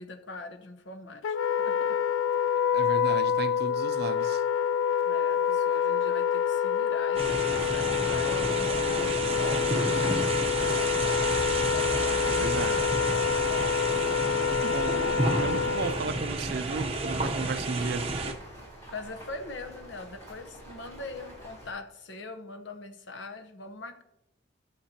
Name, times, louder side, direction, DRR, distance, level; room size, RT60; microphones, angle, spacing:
voice 1, 0.0-2.0 3.3-3.4 5.0-10.5 14.1-14.5 18.9-24.0, left 2 dB, 70° left, 0.9 m, -42 dB
Wind instrument woodwind instrument, 1.2-16.1, left 8 dB, 85° left, 0.3 m, -27 dB
voice 2, 2.7-4.4 10.4-10.5 12.2-12.9 14.6-15.0 15.4-18.1, right 4 dB, 55° right, 0.4 m, -34 dB
sound 1, 7.2-18.3, right 2 dB, 30° right, 0.8 m, -31 dB
sound 2, 11.2-21.7, right 1 dB, 15° left, 3.1 m, -47 dB
14.5 x 6.8 x 2.8 m
head